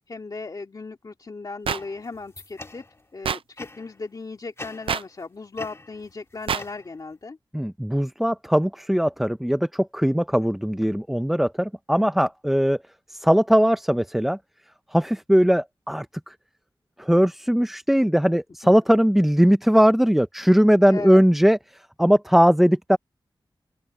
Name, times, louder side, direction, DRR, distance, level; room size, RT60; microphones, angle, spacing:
voice 1, 0.1-2.8 3.1-7.4 20.9-21.2, left 3 dB, 45° left, 2.5 m, -36 dB
sound 1, 1.7-3.1 3.6-4.0 4.6-5.2 5.5-7.2, left 2 dB, 30° left, 1.7 m, -43 dB
sound 2, 1.7-1.8 3.2-3.4 4.9-5.0 6.5-6.6, right 7 dB, 90° right, 0.4 m, -25 dB
voice 2, 7.5-12.8 13.1-14.4 14.9-16.3 17.0-23.0, equal, 5° right, 0.6 m, -20 dB
open air
wide cardioid pair, 95°, 9 cm